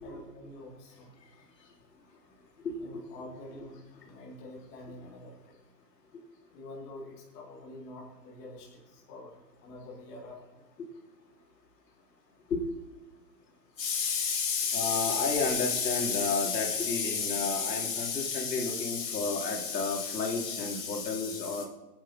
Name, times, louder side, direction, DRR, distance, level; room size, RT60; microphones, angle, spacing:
voice 1, 0.0-1.1 2.8-5.6 6.5-9.3 9.6-10.6, left 1 dB, 15° left, -3 dB, 1.9 m, -46 dB
voice 2, 13.8-21.6, left 5 dB, 80° left, 1 dB, 3.2 m, -30 dB
21.5 x 9.4 x 4.3 m, 1.1 s
hypercardioid pair, 175°, 49 cm